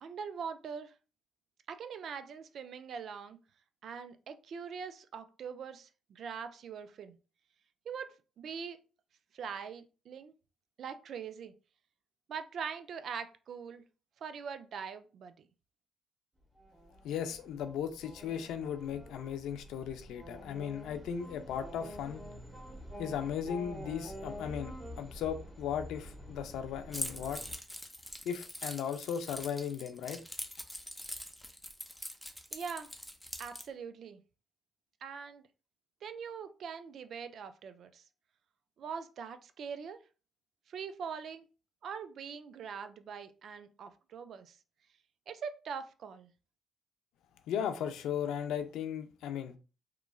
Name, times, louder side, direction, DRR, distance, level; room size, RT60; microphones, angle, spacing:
voice 1, 0.0-0.9 1.7-3.4 3.8-7.2 7.9-8.9 9.3-10.3 10.8-11.5 12.3-13.8 14.2-15.3 32.5-32.9 33.4-34.2 35.0-35.5 36.0-38.0 38.8-40.0 40.7-41.4 41.8-44.6 45.3-46.3, right 6 dB, 65° right, 0.3 m, -42 dB
sound 1, 16.5-27.6, equal, 25° right, 1.0 m, -47 dB
voice 2, 17.0-22.2 23.0-27.4 28.2-30.2 47.5-49.6, left 8 dB, 85° left, 0.4 m, -36 dB
Keys jangling, 26.9-33.7, equal, 5° left, 0.5 m, -43 dB
2.9 x 2.4 x 2.3 m
cardioid pair, 90°, 0 cm